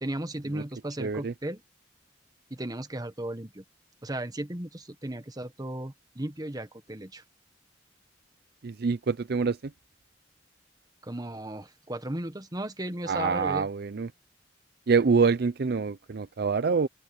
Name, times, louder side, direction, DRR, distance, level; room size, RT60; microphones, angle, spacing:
voice 1, 0.0-1.6 2.5-3.6 4.0-7.2 11.0-13.7, right 1 dB, 20° right, 1.4 m, -35 dB
voice 2, 1.0-1.3 8.6-9.6 13.1-14.1 14.9-16.9, right 5 dB, 60° right, 0.5 m, -26 dB
open air
head